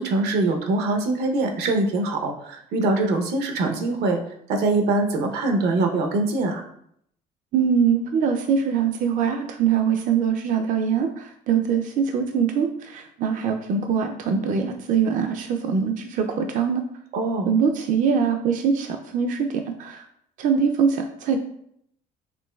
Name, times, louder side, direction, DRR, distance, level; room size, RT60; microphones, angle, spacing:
voice 1, 0.0-4.2 4.5-6.6 17.1-17.5, right 2 dB, 80° right, 5 dB, 0.7 m, -23 dB
voice 2, 7.5-16.8 17.5-19.5 19.8-20.0 20.4-21.4, right 6 dB, 50° right, 5 dB, 0.4 m, -23 dB
5.2 x 3.0 x 2.2 m, 0.70 s
cardioid pair, 110°, 17 cm